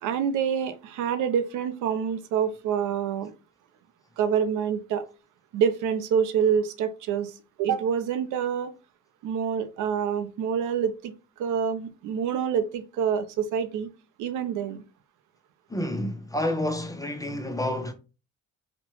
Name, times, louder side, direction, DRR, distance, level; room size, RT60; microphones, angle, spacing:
voice 1, 0.0-3.3 4.2-5.1 5.5-7.3 7.6-8.7 9.2-11.1 11.4-13.9 14.2-14.8, right 7 dB, 80° right, 0.5 m, -26 dB
voice 2, 15.7-17.9, left 1 dB, 10° left, 0.4 m, -29 dB
2.8 x 2.1 x 2.9 m
cardioid pair, 90°, 30 cm